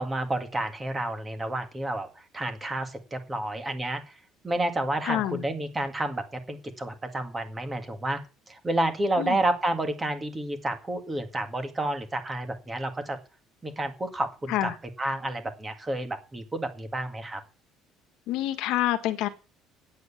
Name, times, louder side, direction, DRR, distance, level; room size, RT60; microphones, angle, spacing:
voice 1, 0.0-2.1 2.3-4.1 4.4-8.2 8.5-13.2 13.6-14.7 15.0-17.4, right 1 dB, 15° right, 7 dB, 1.9 m, -30 dB
voice 2, 5.0-5.4 9.2-9.4 14.5-14.7 18.3-19.3, left 14 dB, 70° left, 10 dB, 1.4 m, -27 dB
9.3 x 8.1 x 8.3 m, 0.34 s
cardioid pair, 155°, 0 cm